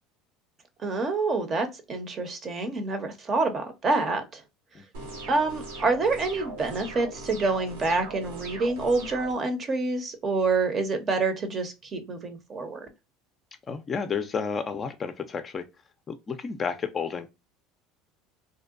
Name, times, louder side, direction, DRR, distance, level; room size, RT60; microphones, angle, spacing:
voice 1, 0.8-4.4 5.3-12.8, right 3 dB, 35° right, 0.7 m, -27 dB
sound 1, 4.9-9.3, right 3 dB, 85° right, 0.8 m, -40 dB
voice 2, 13.7-15.7 16.1-17.3, left 6 dB, 30° left, 0.4 m, -31 dB
2.6 x 2.2 x 2.4 m
supercardioid pair, 100°, 0 cm